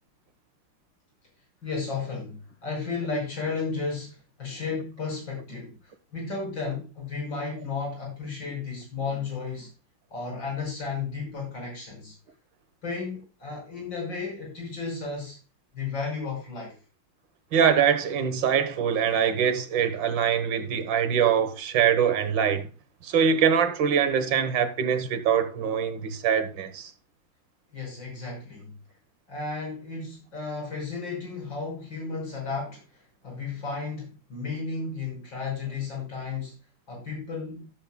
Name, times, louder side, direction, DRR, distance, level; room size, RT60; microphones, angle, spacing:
voice 1, 1.6-9.7 10.1-12.1 12.8-15.4 15.7-16.8 27.7-28.7 29.3-36.5 36.9-37.7, left 4 dB, 75° left, 6.0 m, -33 dB
voice 2, 17.5-22.7 23.0-26.9, right 7 dB, 70° right, 2.0 m, -23 dB
16.0 x 7.6 x 2.2 m
omnidirectional pair, 2.1 m